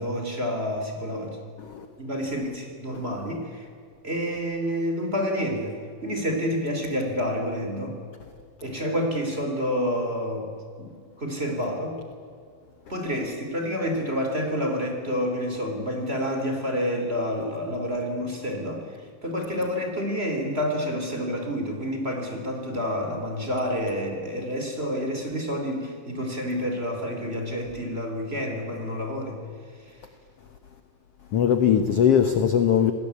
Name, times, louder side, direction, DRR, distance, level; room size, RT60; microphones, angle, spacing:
voice 1, 0.0-1.4 2.0-3.7 4.0-5.8 6.0-8.0 8.6-10.5 10.8-12.0 12.9-18.8 19.2-29.4, equal, 20° right, 3 dB, 3.1 m, -28 dB
voice 2, 31.3-32.9, left 8 dB, 60° left, 8 dB, 1.7 m, -20 dB
27.5 x 19.0 x 8.4 m, 2.2 s
omnidirectional pair, 3.9 m